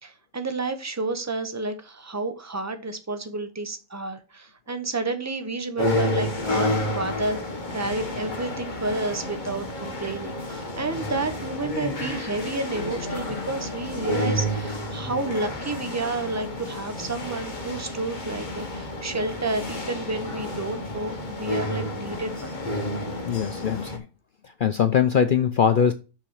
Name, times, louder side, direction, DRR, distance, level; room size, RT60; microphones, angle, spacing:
voice 1, 0.0-7.4 7.7-22.5, right 2 dB, 15° right, 0.8 m, -30 dB
sound 1, 5.8-24.0, left 1 dB, 40° left, 1.3 m, -30 dB
voice 2, 23.3-24.0 24.6-25.9, left 7 dB, 55° left, 0.6 m, -21 dB
6.0 x 5.8 x 6.3 m
omnidirectional pair, 1.3 m